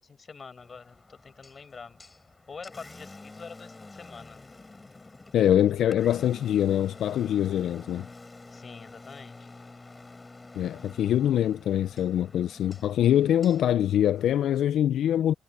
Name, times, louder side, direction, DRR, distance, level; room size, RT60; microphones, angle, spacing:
voice 1, 0.0-2.0 2.5-4.4 8.5-9.5, left 5 dB, 35° left, 6.6 m, -45 dB
Engine, 0.6-14.6, left 3 dB, 20° left, 6.8 m, -48 dB
voice 2, 5.3-8.1 10.5-15.3, left 11 dB, 75° left, 0.5 m, -24 dB
cardioid pair, 90°, 0 cm